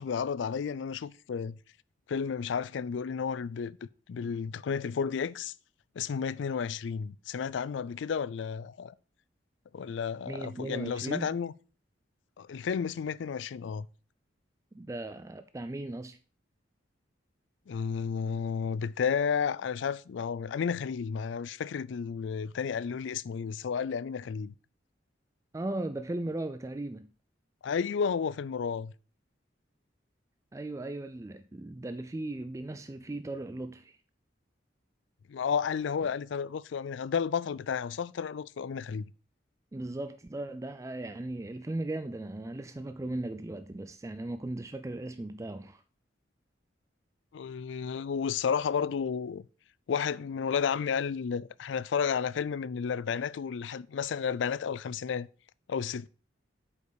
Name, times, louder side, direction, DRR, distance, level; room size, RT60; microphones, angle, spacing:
voice 1, 0.0-1.6 2.1-3.8 4.1-5.5 6.0-8.9 9.7-11.5 12.4-13.9 17.7-24.5 27.6-28.9 35.3-39.1 47.3-49.4 49.9-55.3 55.7-56.1, left 6 dB, 75° left, 0.4 m, -32 dB
voice 2, 10.3-11.4 14.7-16.2 25.5-27.1 30.5-34.0 39.7-45.8, right 2 dB, 15° right, 0.3 m, -37 dB
8.1 x 5.4 x 4.8 m
head